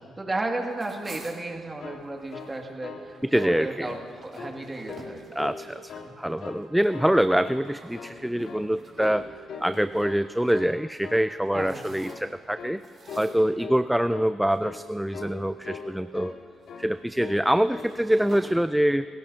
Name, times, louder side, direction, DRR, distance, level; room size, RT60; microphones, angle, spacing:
voice 1, 0.0-3.1 3.4-3.9 4.2-5.4 11.5-11.9, right 2 dB, 20° right, 1 dB, 2.2 m, -33 dB
sound 1, 0.7-2.6 3.0-10.6 11.2-12.4 12.8-14.0 14.5-14.7 15.1-15.9 16.5-18.5, right 3 dB, 45° right, 2.7 m, -49 dB
sound 2, 1.8-3.1 3.3-3.6 3.8-4.5 4.9-5.6 5.9-6.6 6.9-7.2 7.4-8.2 8.5-8.7 9.0-9.2 9.5-10.2 10.5-10.7 11.0-11.3 11.5-11.8 12.0-12.3 12.6-12.8 13.1-13.3 13.6-13.8 14.1-14.3 14.6-14.9 15.1-15.4 15.6-16.4 16.7-16.9 17.2-17.4 17.7-17.9, left 5 dB, 70° left, 1.7 m, -40 dB
voice 2, 3.2-3.9 5.3-9.3 9.6-12.8 13.2-16.4 16.8-19.1, equal, 5° right, 12 dB, 0.3 m, -25 dB
29.5 x 15.5 x 2.8 m, 2.5 s
cardioid pair, 90°, 0 cm